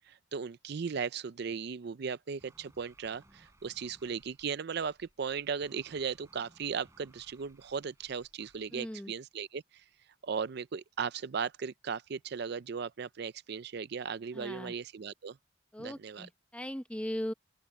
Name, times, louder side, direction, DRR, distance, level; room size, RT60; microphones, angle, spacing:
voice 1, 0.1-9.6 10.2-15.4 15.8-16.3, right 6 dB, 55° right, 0.4 m, -37 dB
sound 1, 2.4-8.7, right 1 dB, 15° right, 6.9 m, -63 dB
voice 2, 8.7-9.1 14.3-14.7 15.7-17.3, equal, 5° left, 0.9 m, -39 dB
open air
head